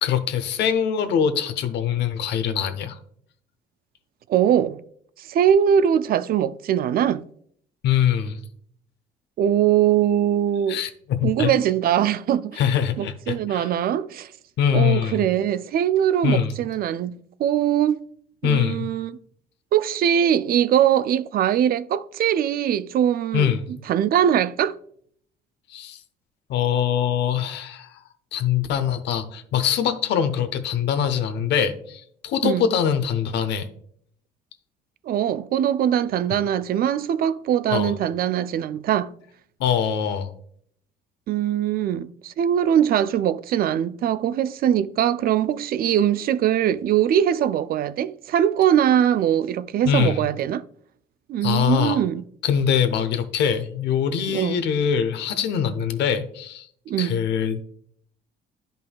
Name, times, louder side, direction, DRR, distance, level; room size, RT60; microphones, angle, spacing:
voice 1, 0.0-3.0 7.8-8.4 10.7-11.5 12.6-13.7 14.6-15.2 16.2-16.5 18.4-18.9 23.3-23.6 25.7-26.0 26.5-27.9 28.3-33.7 37.7-37.9 39.6-40.3 49.8-50.2 51.4-52.0 52.4-56.7 57.0-57.6, left 8 dB, 75° left, 0.8 m, -23 dB
voice 2, 4.3-4.8 5.3-7.2 9.4-10.8 11.2-12.6 13.0-14.3 14.7-18.0 18.4-19.1 19.7-23.5 23.9-24.8 32.4-32.7 35.0-39.1 41.3-50.6 51.3-52.2 54.3-54.7 56.9-57.2, right 10 dB, 55° right, 0.4 m, -21 dB
10.5 x 5.3 x 2.3 m
supercardioid pair, 75°, 18 cm